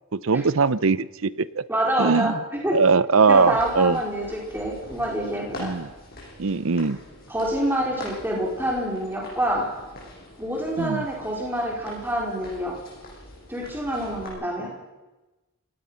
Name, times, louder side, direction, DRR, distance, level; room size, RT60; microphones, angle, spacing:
voice 1, 0.1-1.6 2.0-2.4 2.7-4.0 5.6-5.9 6.4-7.0 10.8-11.0, right 4 dB, 75° right, 18 dB, 0.7 m, -21 dB
voice 2, 1.7-2.3 2.6-2.8 3.3-5.8 7.3-9.7 10.4-12.8 13.5-14.7, right 1 dB, 10° right, -2 dB, 4.7 m, -26 dB
sound 1, 3.3-14.3, left 1 dB, 45° left, 7.1 m, -44 dB
27.5 x 18.0 x 5.8 m, 1.1 s
head